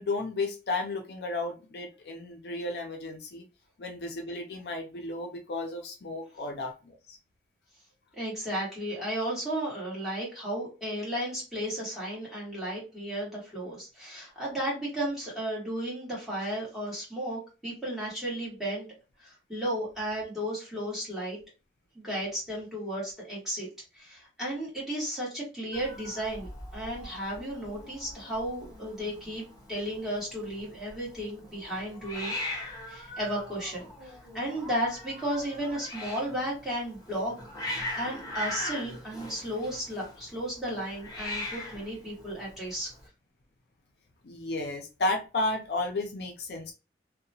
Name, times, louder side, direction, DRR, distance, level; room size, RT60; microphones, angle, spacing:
voice 1, 0.0-3.4 3.8-7.2 44.2-46.7, left 2 dB, 65° left, 4 dB, 0.5 m, -33 dB
voice 2, 8.2-18.9 19.2-21.4 21.9-23.7 23.9-29.4 29.7-32.3 32.9-37.3 37.9-42.9, right 1 dB, ahead, -6 dB, 1.4 m, -34 dB
Hiss, 25.7-43.1, left 1 dB, 20° left, 0.8 m, -41 dB
2.7 x 2.1 x 2.7 m, 0.30 s
head